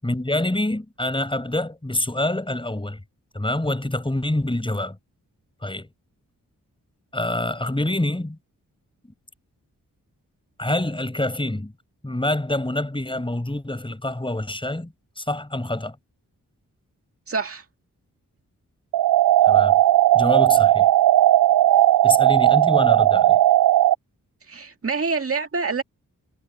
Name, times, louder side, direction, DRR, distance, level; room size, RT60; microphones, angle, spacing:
voice 1, 0.0-3.0 3.3-5.0 5.6-5.9 7.1-8.4 10.6-11.7 12.0-16.0 19.5-19.8 20.1-20.9 22.0-23.4, left 1 dB, 15° left, 7.7 m, -26 dB
voice 2, 17.3-17.6 24.5-25.8, right 4 dB, 45° right, 2.1 m, -26 dB
sound 1, 18.9-24.0, right 13 dB, 90° right, 0.5 m, -16 dB
cardioid pair, 70°, 33 cm